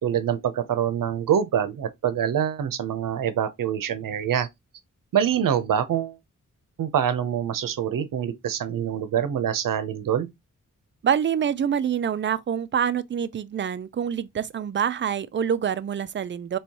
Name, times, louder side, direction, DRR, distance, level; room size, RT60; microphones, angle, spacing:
voice 1, 0.0-4.5 5.1-6.2 6.8-10.3, right 9 dB, 85° right, 0.8 m, -25 dB
voice 2, 11.0-16.6, right 8 dB, 35° right, 0.4 m, -26 dB
4.6 x 3.1 x 2.9 m
wide cardioid pair, 120°, 32 cm